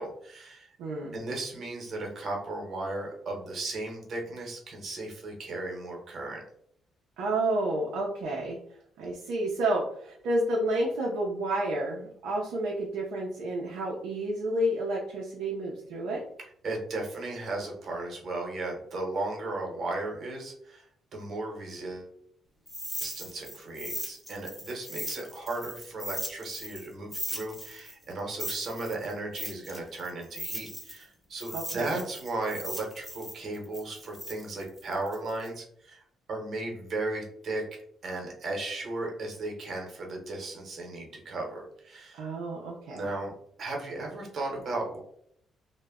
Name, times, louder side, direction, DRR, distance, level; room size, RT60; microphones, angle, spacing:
voice 1, 0.0-0.7 1.1-6.4 16.6-22.1 23.0-36.0 36.3-37.6 38.0-42.2 42.9-43.3 43.6-45.0, right 2 dB, 55° right, 0 dB, 0.9 m, -35 dB
voice 2, 0.8-1.1 7.2-8.6 9.0-16.2 31.5-32.0 42.1-43.1, right 1 dB, 85° right, -3 dB, 0.5 m, -30 dB
sound 1, 22.7-26.9 27.1-31.0 31.4-35.5, equal, ahead, 0.7 m, -38 dB
2.1 x 2.0 x 3.5 m, 0.67 s
cardioid pair, 90°, 0 cm